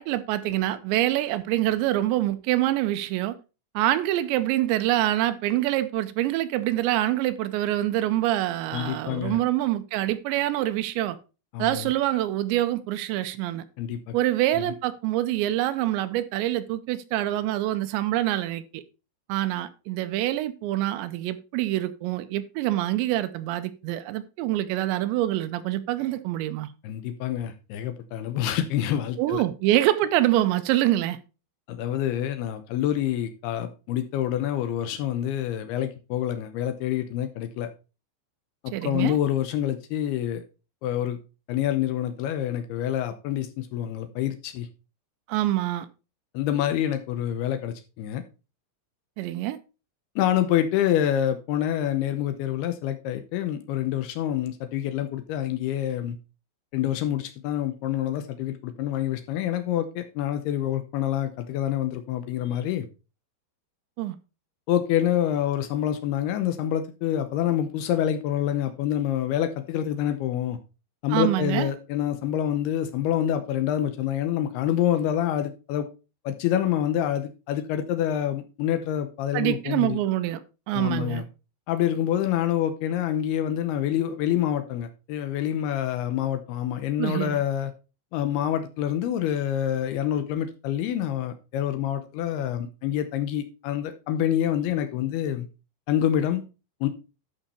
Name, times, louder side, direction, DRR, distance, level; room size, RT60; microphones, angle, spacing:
voice 1, 0.0-3.3 3.8-11.2 11.6-13.6 14.1-18.8 19.3-26.7 29.2-31.2 38.7-39.2 45.3-45.9 49.2-49.6 64.0-64.2 71.1-71.7 79.3-80.4 80.7-81.2 87.0-87.4, right 14 dB, 80° right, 2.7 m, -25 dB
voice 2, 8.7-9.4 11.5-11.9 13.8-14.1 14.6-14.7 26.8-29.4 31.7-37.7 38.6-40.4 40.8-41.2 41.5-44.7 46.3-48.2 50.2-56.2 56.7-62.9 64.7-70.6 71.0-75.9 76.3-80.0 80.7-81.2 81.7-87.7 88.1-95.5 95.9-96.4 96.8-96.9, left 11 dB, 85° left, 2.2 m, -27 dB
11.5 x 5.4 x 4.1 m
omnidirectional pair, 5.5 m